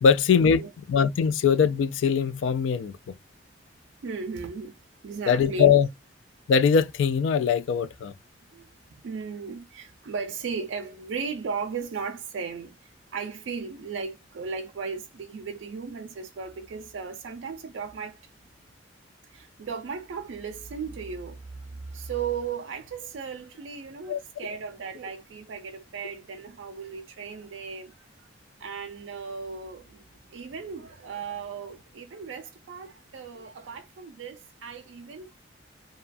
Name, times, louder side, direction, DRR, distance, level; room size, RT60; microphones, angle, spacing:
voice 1, 0.0-3.0 5.3-5.9 6.5-8.1 24.1-24.2, left 6 dB, 80° left, 0.3 m, -21 dB
voice 2, 4.0-4.8 5.0-5.7 8.5-18.2 19.3-27.9 28.6-30.0 30.3-35.4, right 5 dB, 80° right, 0.4 m, -36 dB
2.7 x 2.3 x 2.4 m
head